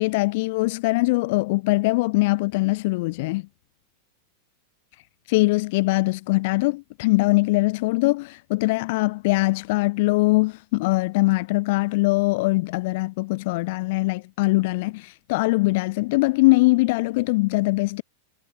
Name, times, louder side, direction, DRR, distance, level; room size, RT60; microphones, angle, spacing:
voice 1, 0.0-3.4 5.3-18.0, left 23 dB, 50° left, 0.6 m, -22 dB
figure-of-eight pair, 90°, 0 cm